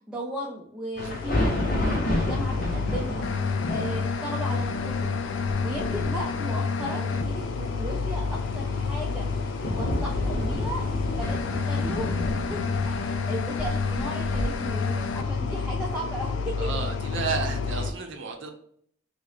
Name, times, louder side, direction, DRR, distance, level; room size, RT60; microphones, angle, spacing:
voice 1, 0.1-12.2 12.5-16.6, equal, 5° right, -3 dB, 0.4 m, -36 dB
sound 1, 1.0-17.9, left 4 dB, 70° left, 0.3 m, -29 dB
sound 2, 1.0-15.2, left 1 dB, 50° left, 0.7 m, -32 dB
voice 2, 1.0-1.4 16.6-18.5, right 5 dB, 75° right, 4 dB, 0.6 m, -33 dB
3.0 x 2.0 x 3.8 m, 0.64 s
head